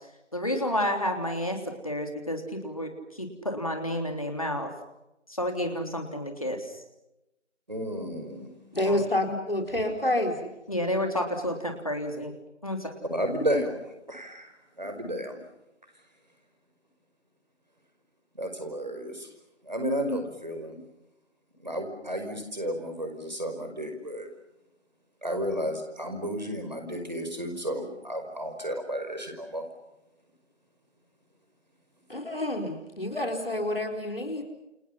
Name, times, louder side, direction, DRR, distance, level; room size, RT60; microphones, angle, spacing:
voice 1, 0.3-4.7 5.3-6.8 8.9-9.0 10.7-12.3 12.6-12.9, left 1 dB, 30° left, 4 dB, 3.4 m, -30 dB
voice 2, 7.7-8.5 8.8-8.9 13.1-15.4 18.3-19.3 19.6-20.8 21.6-24.3 25.2-29.6, equal, 40° right, 6 dB, 5.3 m, -32 dB
voice 3, 8.7-10.5 32.1-34.5, left 1 dB, 50° left, 3 dB, 4.5 m, -28 dB
29.5 x 29.5 x 5.8 m, 0.93 s
figure-of-eight pair, 175°, 36 cm